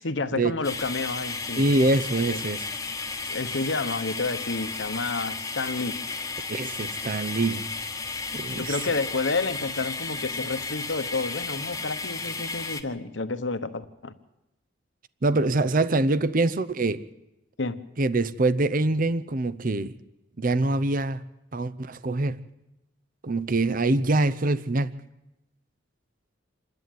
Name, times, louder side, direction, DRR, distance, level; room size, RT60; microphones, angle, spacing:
voice 1, 0.0-1.6 2.3-2.4 3.3-6.0 8.5-14.1 17.6-17.8, left 3 dB, 70° left, 1.2 m, -30 dB
sound 1, 0.6-12.8, left 4 dB, 15° left, 1.1 m, -33 dB
voice 2, 1.6-2.7 6.5-7.7 8.3-8.8 15.2-17.0 18.0-19.9 20.4-21.2 21.5-22.4 23.2-24.9, right 2 dB, 45° right, 0.7 m, -24 dB
27.0 x 11.0 x 9.4 m
head